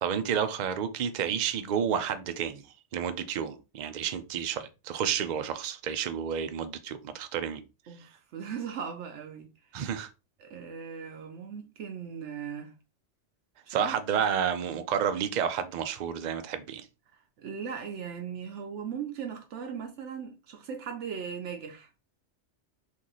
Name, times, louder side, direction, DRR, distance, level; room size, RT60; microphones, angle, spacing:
voice 1, 0.0-2.6 2.9-7.6 9.7-10.1 13.7-16.9, right 8 dB, 55° right, 0.5 m, -30 dB
voice 2, 7.9-9.8 10.4-12.7 13.7-14.0 17.4-21.9, right 7 dB, 80° right, 0.9 m, -38 dB
3.0 x 2.6 x 3.8 m
omnidirectional pair, 1.2 m